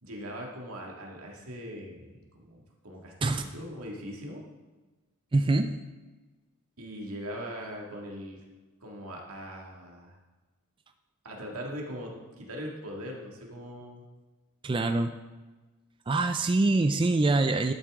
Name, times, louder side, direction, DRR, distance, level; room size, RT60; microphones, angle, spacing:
voice 1, 0.0-4.4 6.8-8.4 8.8-10.1 11.2-14.0, equal, 85° right, -1 dB, 2.1 m, -40 dB
voice 2, 5.3-5.8 14.6-15.2 16.1-17.7, right 2 dB, 25° right, 7 dB, 0.4 m, -24 dB
12.0 x 8.4 x 3.7 m, 1.2 s
head